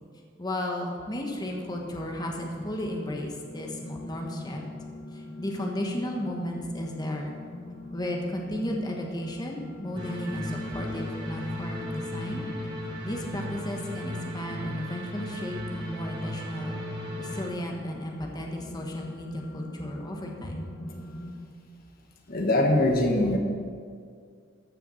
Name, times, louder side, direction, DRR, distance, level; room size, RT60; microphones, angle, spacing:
voice 1, 0.4-4.6 5.1-7.4 7.9-12.5 13.0-16.8 17.2-20.6, left 1 dB, 20° left, 0 dB, 1.3 m, -34 dB
sound 1, 1.4-21.3, left 1 dB, 75° left, 2.4 m, -41 dB
sound 2, 9.9-17.5, left 1 dB, 25° right, 3.4 m, -37 dB
voice 2, 22.3-23.4, left 1 dB, 50° left, 2 dB, 1.3 m, -22 dB
14.5 x 6.8 x 6.4 m, 2.1 s
head